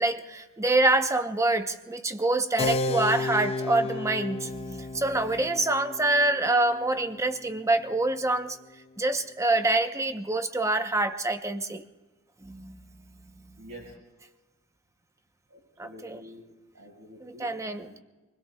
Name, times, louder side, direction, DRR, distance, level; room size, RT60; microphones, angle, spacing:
voice 1, 0.0-8.6 9.0-11.8 12.4-12.8 15.8-16.2 17.2-17.9, right 2 dB, 15° right, 0.8 m, -26 dB
Keyboard (musical), 2.6-8.7, left 2 dB, 25° left, 0.4 m, -34 dB
voice 2, 13.6-13.9 15.5-16.4 16.7-18.0, equal, 85° right, 5.2 m, -48 dB
28.0 x 20.5 x 2.3 m
head